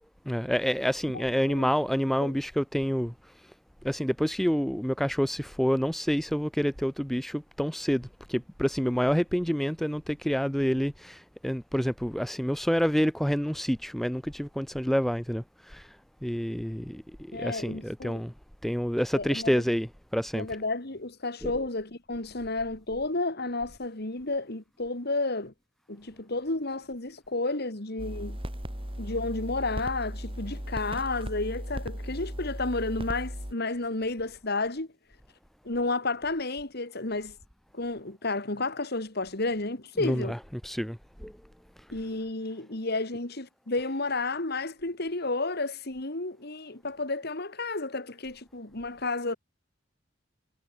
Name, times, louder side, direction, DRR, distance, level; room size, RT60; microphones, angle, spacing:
voice 1, 0.3-3.3 3.8-18.3 18.6-20.5 21.4-21.6 40.0-41.3, equal, ahead, 0.5 m, -28 dB
voice 2, 17.3-18.2 19.1-19.6 20.3-25.5 25.9-28.4 29.0-34.9 35.6-37.4 37.7-40.3 41.9-49.3, left 2 dB, 60° left, 2.7 m, -31 dB
sound 1, 28.0-33.5, equal, 30° right, 4.5 m, -36 dB
head